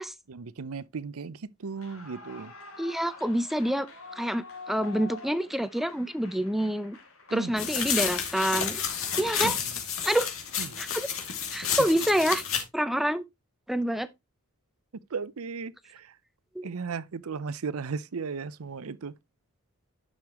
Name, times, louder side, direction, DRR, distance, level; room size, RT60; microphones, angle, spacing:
voice 1, 0.3-2.5 7.3-7.5 9.4-9.5 10.6-10.8 15.1-16.1 16.6-19.1, right 5 dB, 75° right, 0.6 m, -36 dB
Clapping / Cheering / Applause, 1.7-9.1, left 3 dB, 80° left, 3.2 m, -47 dB
voice 2, 2.8-3.9 4.2-7.0 7.3-8.8 9.2-9.6 10.0-10.3 10.8-11.1 11.5-12.4 12.7-13.2 13.7-14.1 16.6-16.7, equal, ahead, 0.5 m, -27 dB
sound 1, 7.6-12.6, left 7 dB, 65° left, 2.4 m, -30 dB
10.5 x 6.5 x 2.9 m
head